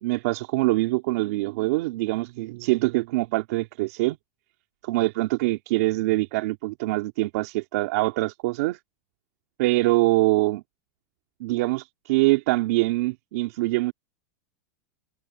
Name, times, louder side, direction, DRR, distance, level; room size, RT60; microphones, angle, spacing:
voice 1, 0.0-4.2 4.8-8.8 9.6-10.6 11.4-13.9, right 20 dB, 55° right, 3.5 m, -24 dB
supercardioid pair, 165°, 10 cm